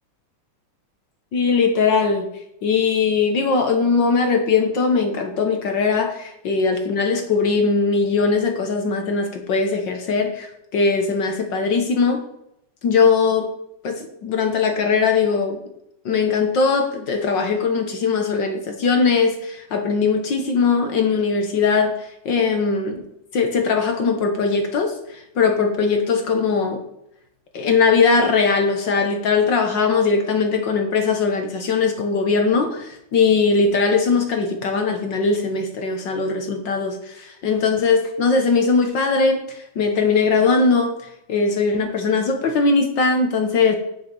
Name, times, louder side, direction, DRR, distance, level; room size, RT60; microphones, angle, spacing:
voice 1, 1.3-2.3 2.6-12.2 12.8-13.5 13.8-15.6 16.0-23.0 23.3-26.8 27.5-40.9 41.3-43.7, left 4 dB, 60° left, 5 dB, 1.2 m, -20 dB
9.2 x 6.6 x 6.0 m, 0.78 s
omnidirectional pair, 3.4 m